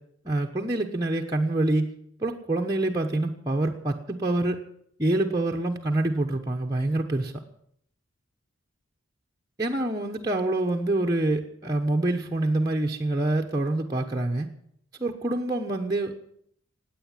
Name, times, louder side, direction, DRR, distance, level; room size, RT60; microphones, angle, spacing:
voice 1, 0.2-1.9 2.2-4.6 5.0-7.3 9.6-14.5 15.0-16.2, right 2 dB, 20° right, 0 dB, 1.1 m, -26 dB
17.0 x 9.3 x 9.2 m, 0.69 s
head